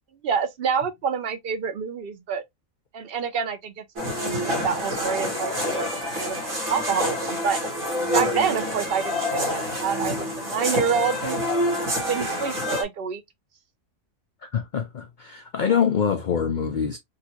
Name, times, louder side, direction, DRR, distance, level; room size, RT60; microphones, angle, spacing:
voice 1, 0.2-2.4 2.9-3.8 4.4-7.6 8.1-11.5 11.9-13.2, right 6 dB, 55° right, 0.7 m, -27 dB
sound 1, 4.0-12.8, left 1 dB, 80° right, 1.8 m, -27 dB
voice 2, 14.4-17.0, left 7 dB, 65° left, 0.4 m, -25 dB
3.8 x 2.4 x 2.8 m
omnidirectional pair, 1.4 m